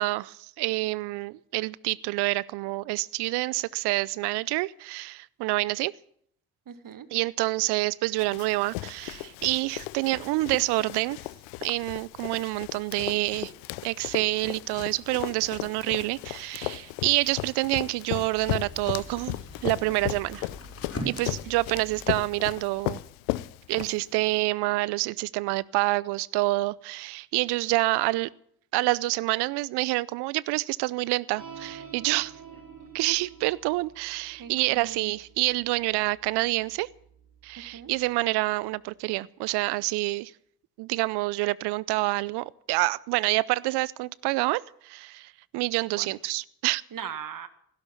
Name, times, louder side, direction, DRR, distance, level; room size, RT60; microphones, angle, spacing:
voice 1, 0.0-5.9 7.1-11.2 11.6-13.5 13.8-20.5 21.1-23.0 23.7-28.3 28.7-32.3 32.9-36.9 37.4-40.3 40.8-46.8, right 21 dB, 75° right, 0.6 m, -27 dB
voice 2, 6.7-7.1 32.7-33.0 34.4-35.1 37.7-37.9 46.0-46.1 46.9-47.5, right 8 dB, 50° right, 1.7 m, -40 dB
Run, 8.2-24.3, left 19 dB, 85° left, 0.6 m, -36 dB
sound 1, 18.3-23.4, left 1 dB, 35° left, 5.5 m, -42 dB
sound 2, 31.3-38.0, right 7 dB, 90° right, 3.6 m, -49 dB
16.0 x 12.0 x 7.2 m
hypercardioid pair, 45°, 41 cm